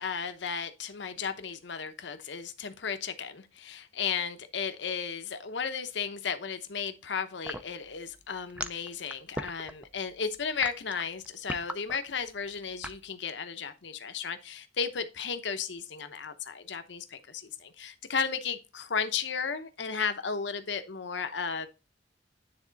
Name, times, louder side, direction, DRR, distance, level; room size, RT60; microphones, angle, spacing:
voice 1, 0.0-21.7, left 6 dB, 65° left, 0.8 m, -34 dB
sound 1, 7.4-13.0, right 1 dB, 10° right, 0.5 m, -38 dB
9.7 x 3.6 x 4.0 m
head